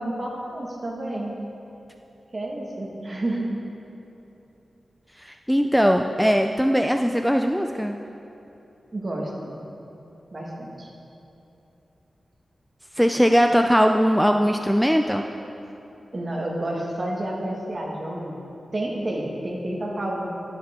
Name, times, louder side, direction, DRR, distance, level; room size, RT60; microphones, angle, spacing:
voice 1, 0.0-1.3 2.3-3.4 8.9-9.6 10.3-10.9 16.1-18.4 18.7-20.3, right 1 dB, 40° right, -2 dB, 1.7 m, -30 dB
voice 2, 5.2-8.0 13.0-15.3, equal, ahead, 4 dB, 0.3 m, -20 dB
12.5 x 7.3 x 3.7 m, 2.9 s
cardioid pair, 70°, 0 cm